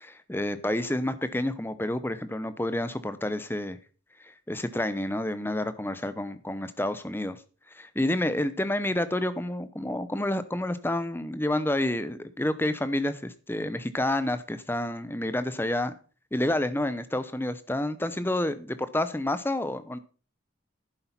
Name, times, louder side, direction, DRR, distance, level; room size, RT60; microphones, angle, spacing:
voice 1, 0.0-3.8 4.2-7.4 7.7-15.9 16.3-20.0, left 1 dB, 10° left, 13 dB, 0.8 m, -29 dB
11.0 x 8.6 x 5.8 m, 0.38 s
head